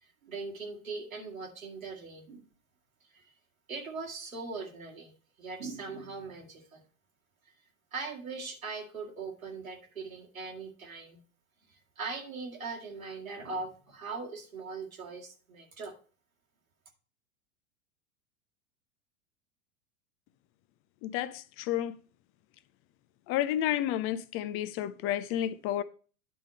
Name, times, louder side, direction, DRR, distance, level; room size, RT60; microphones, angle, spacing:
voice 1, 0.0-2.4 3.1-3.3 3.7-5.1 5.4-6.8 7.5-7.6 7.9-11.2 11.7-15.9, right 4 dB, 85° right, 2.1 m, -40 dB
voice 2, 21.0-21.9 23.3-25.8, left 12 dB, 35° left, 0.5 m, -31 dB
10.0 x 3.7 x 5.3 m
hypercardioid pair, 95°, 40 cm